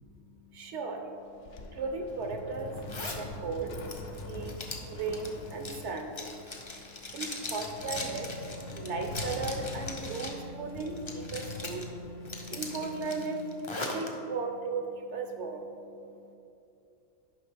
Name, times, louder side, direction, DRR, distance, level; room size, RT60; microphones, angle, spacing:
voice 1, 0.6-1.0 1.8-2.7 3.2-3.7 4.3-4.5 5.0-5.3 5.5-6.1 7.1-8.3 8.8-11.8 12.5-13.4 13.9-14.8 15.1-15.6, right 4 dB, 65° right, 4 dB, 0.8 m, -35 dB
sound 1, 1.1-13.0, left 3 dB, 60° left, 0.9 m, -44 dB
Zipper (clothing), 2.9-3.2 3.7-10.4 10.8-11.8 12.2-14.1, left 2 dB, 35° left, 0.4 m, -40 dB
sound 2, 7.9-13.7, left 1 dB, 80° left, 2.6 m, -46 dB
10.5 x 5.3 x 3.4 m, 2.8 s
omnidirectional pair, 1.5 m